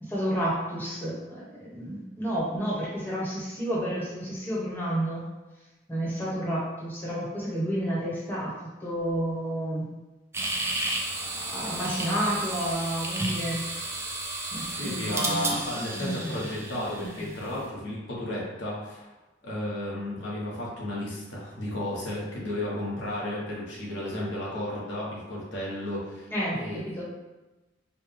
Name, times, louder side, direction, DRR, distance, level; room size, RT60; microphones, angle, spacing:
voice 1, 0.0-5.3 5.9-8.5 8.8-9.9 11.3-13.6 14.5-15.6 26.3-26.6 26.8-27.0, right 1 dB, 10° left, -7 dB, 1.1 m, -30 dB
sound 1, 10.3-17.6, right 2 dB, 15° right, 0.4 m, -32 dB
voice 2, 14.7-19.1 19.4-26.3 26.6-26.8, left 1 dB, 85° left, -6 dB, 1.2 m, -33 dB
4.7 x 2.2 x 3.3 m, 1.1 s
head